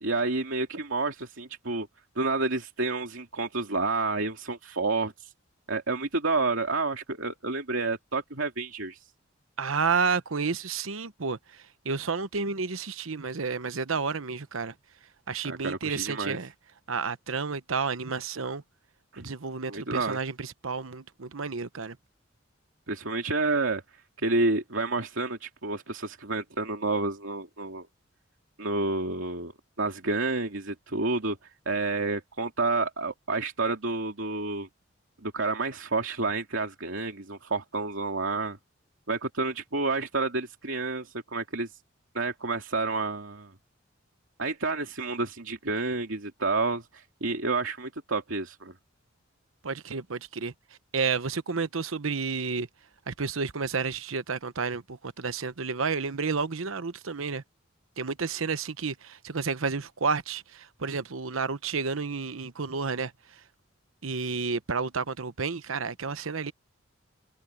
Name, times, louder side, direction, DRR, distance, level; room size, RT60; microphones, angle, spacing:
voice 1, 0.0-1.9 2.2-5.3 5.7-9.0 15.4-16.4 19.1-19.3 19.7-20.2 22.9-23.8 24.2-27.9 28.6-29.5 29.8-31.4 31.7-34.7 35.2-38.6 39.1-41.8 42.1-43.5 44.4-48.7, right 3 dB, 75° right, 2.6 m, -29 dB
voice 2, 9.6-14.7 15.3-16.5 16.9-18.6 19.2-22.0 49.6-50.5 50.9-52.7 53.1-57.4 58.0-63.1 64.0-66.5, right 5 dB, 90° right, 1.0 m, -31 dB
head